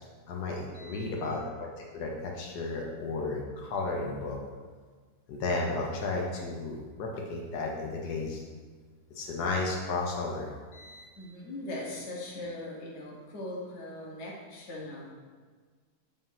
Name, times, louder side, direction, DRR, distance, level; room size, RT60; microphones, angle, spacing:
voice 1, 0.3-1.7 1.9-4.4 5.3-8.4 9.2-11.1, left 3 dB, 80° left, -1 dB, 1.4 m, -33 dB
voice 2, 1.0-1.6 11.1-15.1, left 1 dB, 45° left, -3 dB, 1.4 m, -40 dB
7.2 x 2.6 x 5.5 m, 1.5 s
omnidirectional pair, 1.7 m